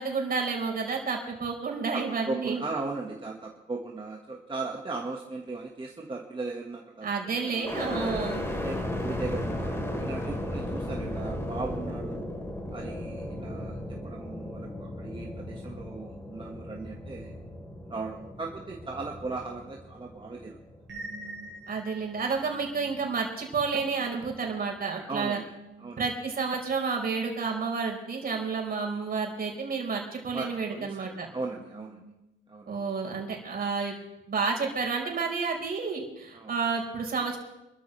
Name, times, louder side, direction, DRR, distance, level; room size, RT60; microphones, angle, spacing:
voice 1, 0.0-2.6 7.0-8.4 21.7-25.4 26.0-31.3 32.7-34.0 34.3-37.4, right 5 dB, 50° right, 0 dB, 4.7 m, -30 dB
voice 2, 1.9-8.2 8.6-12.2 12.7-17.3 17.9-20.6 25.1-25.5 25.8-26.1 30.3-32.0 32.5-32.8 36.3-36.5, right 3 dB, 25° right, -1 dB, 1.7 m, -37 dB
sound 1, 7.6-21.7 22.2-22.9, left 1 dB, 15° left, 3.8 m, -36 dB
sound 2, 20.9-32.5, right 2 dB, 70° right, 3.6 m, -49 dB
27.0 x 13.0 x 3.4 m, 0.93 s
cardioid pair, 90°, 20 cm